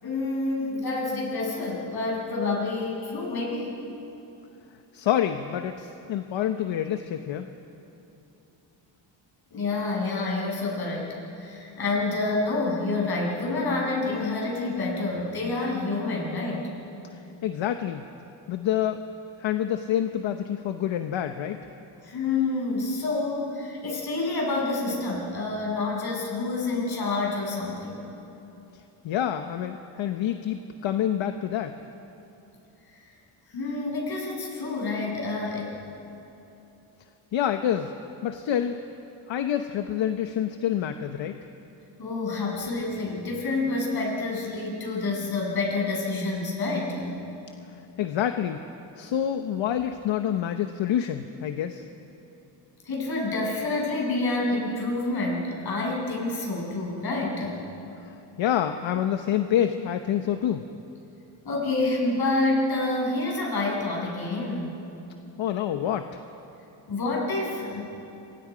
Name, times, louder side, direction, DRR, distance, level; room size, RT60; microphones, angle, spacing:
voice 1, 0.0-3.8 9.5-16.7 22.0-28.1 33.0-33.1 33.5-35.8 42.0-47.2 52.8-57.6 61.4-64.8 66.9-67.8, left 2 dB, 55° left, -2 dB, 7.0 m, -28 dB
voice 2, 4.9-7.5 17.1-18.1 18.5-19.0 19.4-21.6 29.0-31.8 37.3-37.9 38.2-38.8 39.3-41.4 48.0-48.6 49.0-51.8 58.0-58.1 58.4-60.6 65.4-66.2, left 10 dB, 75° left, 7 dB, 1.0 m, -27 dB
27.5 x 24.0 x 5.1 m, 3.0 s
cardioid pair, 135°, 46 cm